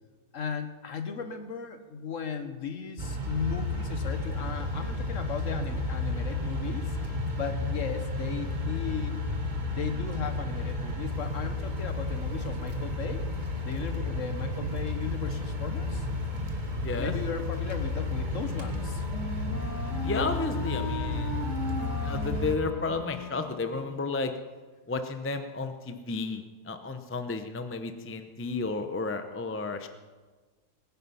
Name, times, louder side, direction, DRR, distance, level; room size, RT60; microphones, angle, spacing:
voice 1, 0.3-7.0 7.4-9.2 9.7-13.2 13.6-16.1 17.0-19.0, left 6 dB, 55° left, 8 dB, 1.4 m, -36 dB
sound 1, 3.0-22.5, left 2 dB, 30° right, 1.5 m, -32 dB
voice 2, 16.8-17.1 20.0-24.3 24.9-29.9, left 3 dB, 15° left, 8 dB, 0.4 m, -33 dB
Wind instrument woodwind instrument, 18.0-24.1, equal, 85° left, 2.9 m, -38 dB
21.0 x 9.8 x 5.7 m, 1.4 s
omnidirectional pair, 1.7 m